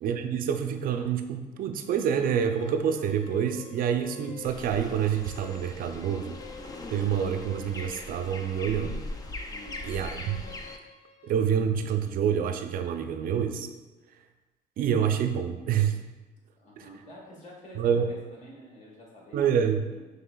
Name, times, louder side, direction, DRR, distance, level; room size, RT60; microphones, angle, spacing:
voice 1, 0.0-6.3 6.9-9.0 9.8-10.4 11.2-13.7 14.8-16.0 16.8-16.9 17.8-18.1 19.3-19.9, right 8 dB, 55° right, 6 dB, 0.4 m, -27 dB
sound 1, 1.6-11.5, left 6 dB, 80° left, 0.5 m, -50 dB
sound 2, 4.4-10.8, left 2 dB, 20° left, 0.4 m, -40 dB
voice 2, 9.5-9.9 16.6-19.6 19.9-20.1, equal, 45° left, -3 dB, 1.3 m, -48 dB
5.5 x 3.3 x 2.3 m, 1.2 s
cardioid pair, 110°, 17 cm